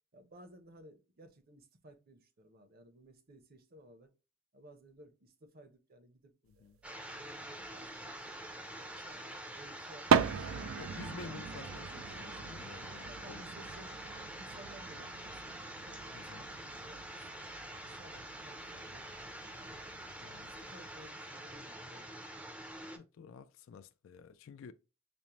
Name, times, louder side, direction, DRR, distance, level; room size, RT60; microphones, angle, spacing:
voice 1, 0.1-4.1 4.5-10.8 11.2-11.7 12.8-17.2 18.0-19.1 19.5-22.7, right 1 dB, 45° right, 0.7 m, -58 dB
sound 1, 6.7-6.8 7.6-8.5 9.6-9.7 9.8-21.1, right 6 dB, 80° right, 0.4 m, -38 dB
sound 2, 6.8-23.0, right 1 dB, 5° right, 0.5 m, -46 dB
voice 2, 10.8-13.7 16.1-16.4 20.2-20.5 22.9-24.7, left 5 dB, 70° left, 0.3 m, -51 dB
5.2 x 2.0 x 2.9 m
head